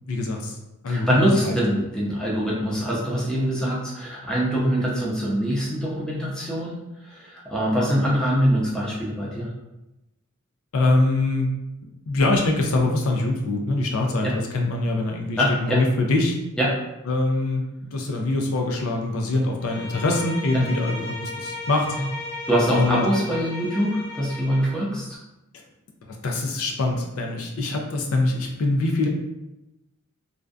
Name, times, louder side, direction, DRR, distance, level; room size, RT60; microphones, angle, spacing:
voice 1, 0.1-0.5 0.8-1.6 10.7-11.5 12.1-16.4 17.1-21.9 22.7-23.0 26.2-29.1, left 2 dB, 70° left, 1 dB, 0.4 m, -23 dB
voice 2, 0.9-6.8 7.1-9.5 14.2-14.3 15.4-15.8 16.6-16.8 20.5-20.6 22.5-25.2, equal, 5° left, -6 dB, 0.5 m, -23 dB
Bowed string instrument, 19.6-24.8, left 2 dB, 35° left, 0.8 m, -35 dB
2.5 x 2.2 x 2.3 m, 0.95 s
head